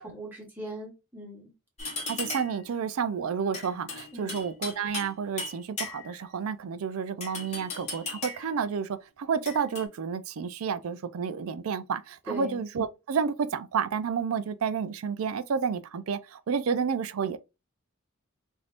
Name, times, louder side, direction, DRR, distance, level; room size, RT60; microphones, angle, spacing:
voice 1, 0.0-1.5 4.1-4.4 12.3-12.6, equal, 10° right, 1.4 m, -39 dB
sound 1, 1.8-2.6 3.5-5.1 5.4-6.2 7.2-8.5 9.4-9.8, left 3 dB, 30° left, 1.3 m, -37 dB
voice 2, 2.1-17.4, right 6 dB, 75° right, 0.4 m, -30 dB
3.4 x 2.6 x 2.4 m
head